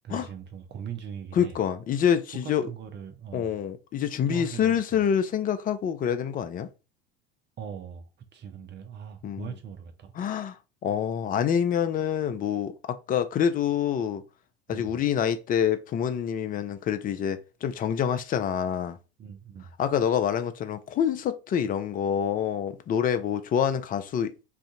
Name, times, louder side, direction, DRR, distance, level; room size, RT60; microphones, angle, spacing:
voice 1, 0.0-1.5 2.4-3.5 4.3-5.0 7.6-10.1 14.7-14.9 19.2-19.7, right 7 dB, 35° right, 0.7 m, -40 dB
voice 2, 1.3-2.7 3.3-6.7 9.2-9.5 10.2-10.6 10.8-14.2 14.7-19.0 19.8-24.3, left 8 dB, 25° left, 0.4 m, -26 dB
2.6 x 2.4 x 3.7 m
hypercardioid pair, 70°, 33 cm